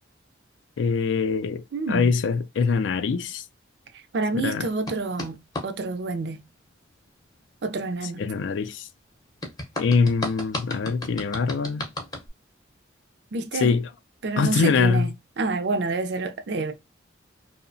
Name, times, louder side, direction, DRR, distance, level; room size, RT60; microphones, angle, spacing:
voice 1, 0.8-3.4 4.3-4.7 8.2-8.9 9.8-11.9 13.5-13.9 14.4-15.1, left 5 dB, 75° left, 0.4 m, -23 dB
voice 2, 1.7-2.2 3.9-6.4 7.6-8.2 13.3-13.8 14.2-16.7, right 3 dB, 60° right, 0.4 m, -28 dB
sound 1, 4.9-5.7 9.4-12.3, left 2 dB, 20° left, 0.6 m, -33 dB
2.7 x 2.1 x 2.5 m
head